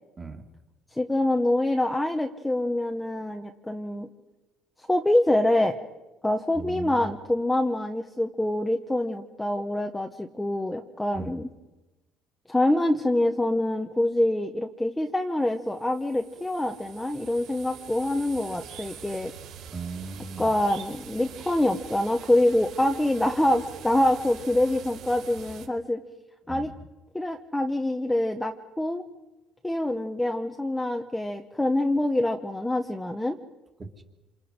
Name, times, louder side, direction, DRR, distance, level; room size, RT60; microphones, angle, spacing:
voice 1, 0.9-4.1 4.8-5.7 6.2-11.5 12.5-19.3 20.4-26.0 26.5-26.7 27.1-29.0 29.6-33.4, left 1 dB, 5° left, 4 dB, 0.9 m, -25 dB
voice 2, 6.5-7.1 11.1-11.3 19.7-20.5 26.5-26.7 33.8-34.0, right 4 dB, 15° right, 4 dB, 2.1 m, -37 dB
sound 1, 15.6-25.7, right 8 dB, 60° right, 3.9 m, -44 dB
28.0 x 27.5 x 5.2 m, 1.1 s
cardioid pair, 175°, 0 cm